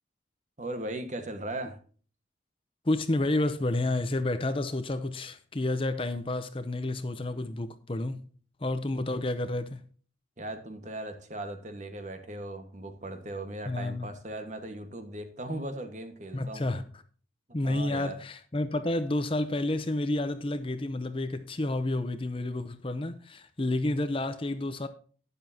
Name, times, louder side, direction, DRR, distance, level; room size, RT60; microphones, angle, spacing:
voice 1, 0.6-1.8 10.4-16.7 17.6-18.2, right 1 dB, 40° right, 1.5 m, -38 dB
voice 2, 2.9-8.2 8.6-9.8 13.7-14.1 16.3-16.8 17.5-24.9, left 2 dB, 30° left, 0.7 m, -30 dB
12.0 x 10.0 x 2.8 m
head